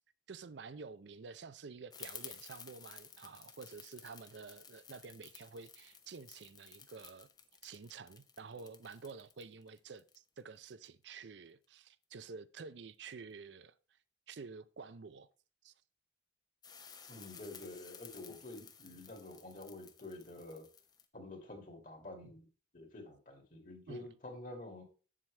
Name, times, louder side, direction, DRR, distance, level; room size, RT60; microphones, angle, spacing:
voice 1, 0.3-7.3 7.6-14.0 14.3-15.3 15.6-15.7 18.3-18.4 23.9-24.1, right 4 dB, 80° right, 0.5 m, -50 dB
sound 1, 1.9-10.9 16.6-21.0, left 7 dB, 20° left, 0.7 m, -54 dB
voice 2, 17.1-20.7 21.1-22.5 22.7-24.8, left 2 dB, 45° left, 2.3 m, -49 dB
7.8 x 7.5 x 3.3 m
head